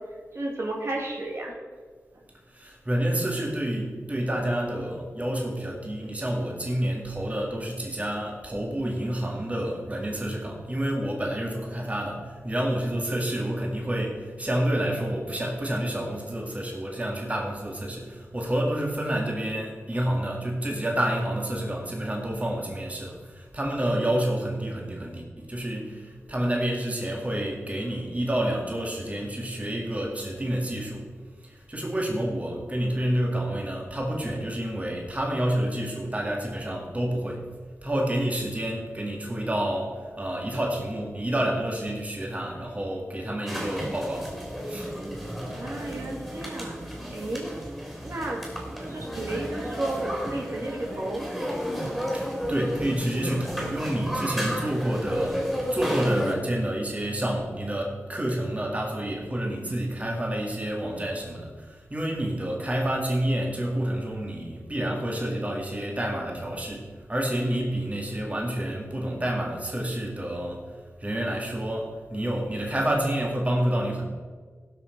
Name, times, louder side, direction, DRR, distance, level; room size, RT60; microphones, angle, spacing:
voice 1, 0.3-1.5 45.5-47.5 48.0-48.4 48.8-51.2, right 2 dB, 55° right, -1 dB, 2.1 m, -33 dB
voice 2, 2.5-31.1 31.4-37.5 37.8-44.4 44.6-44.9 52.1-70.7 71.0-74.1, right 1 dB, 25° right, -1 dB, 2.1 m, -29 dB
sound 1, 43.5-56.3, equal, 5° right, 3.3 m, -32 dB
17.5 x 6.1 x 4.5 m, 1.5 s
wide cardioid pair, 90°, 5 cm